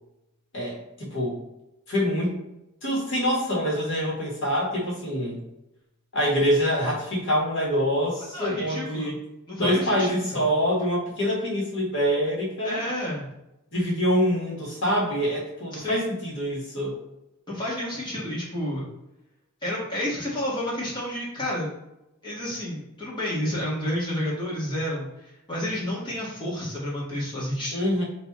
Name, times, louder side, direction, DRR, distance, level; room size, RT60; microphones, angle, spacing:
voice 1, 0.5-1.4 1.9-2.4 2.8-5.4 6.1-9.2 9.6-12.8 13.7-17.0 27.7-28.0, equal, 55° left, -4 dB, 2.1 m, -25 dB
voice 2, 8.3-9.1 9.5-10.5 12.6-13.3 15.7-16.1 17.5-18.9 19.6-21.7 22.2-25.1 25.5-27.8, left 1 dB, 20° left, -7 dB, 1.9 m, -30 dB
6.7 x 3.4 x 4.2 m, 0.91 s
head